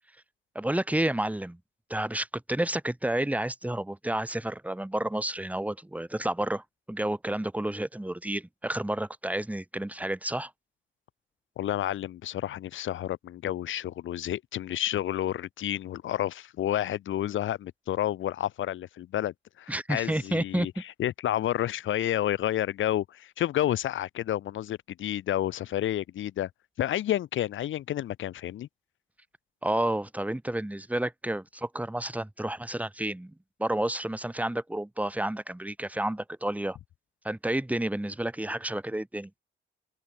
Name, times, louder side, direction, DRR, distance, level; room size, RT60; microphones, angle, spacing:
voice 1, 0.5-1.6 1.9-10.5 19.7-20.8 29.6-33.3 33.6-36.8 37.2-39.3, right 1 dB, 5° right, 6.0 m, -30 dB
voice 2, 11.6-20.7 21.0-26.5 26.8-28.7, left 12 dB, 75° left, 6.8 m, -30 dB
cardioid pair, 90°, 20 cm